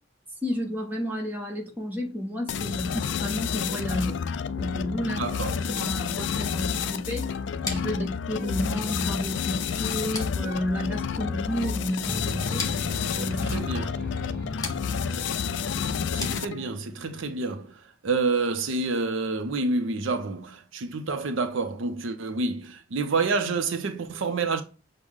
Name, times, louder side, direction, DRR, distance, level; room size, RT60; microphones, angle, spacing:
voice 1, 0.4-4.1 4.6-5.2 5.5-7.3 7.7-12.7 13.1-13.6, equal, 10° right, 0.9 m, -31 dB
sound 1, 2.5-16.7, left 6 dB, 60° left, 0.3 m, -30 dB
voice 2, 5.0-5.5 13.4-13.9 16.1-24.6, right 3 dB, 70° right, 0.5 m, -28 dB
sound 2, 7.6-17.0, left 4 dB, 15° left, 0.7 m, -41 dB
sound 3, 12.1-17.6, equal, 45° right, 0.9 m, -39 dB
6.2 x 2.1 x 3.5 m
head